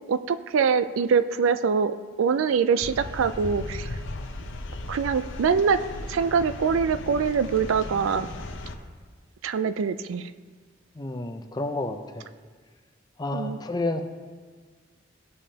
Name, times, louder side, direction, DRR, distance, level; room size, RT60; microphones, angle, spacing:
voice 1, 0.1-3.9 4.9-5.8 6.1-8.3 9.4-10.3 13.3-13.6, right 6 dB, 90° right, 13 dB, 0.4 m, -24 dB
sound 1, 2.8-8.7, left 2 dB, 70° left, 0.7 m, -36 dB
voice 2, 11.0-12.3 13.2-14.0, left 2 dB, 20° left, 5 dB, 0.5 m, -30 dB
15.0 x 5.2 x 2.8 m, 1.5 s
head